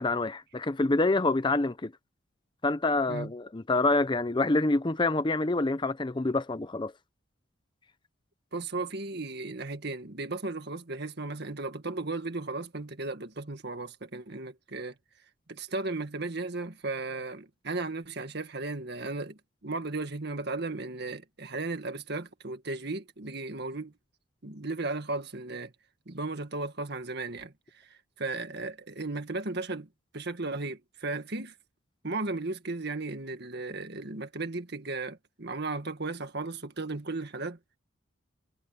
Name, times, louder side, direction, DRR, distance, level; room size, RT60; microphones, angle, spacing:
voice 1, 0.0-1.9 2.6-6.9, left 2 dB, 25° left, 0.6 m, -27 dB
voice 2, 8.5-15.0 15.5-23.9 24.4-25.7 26.1-29.9 30.1-31.5 32.0-37.6, right 3 dB, 55° right, 1.8 m, -35 dB
head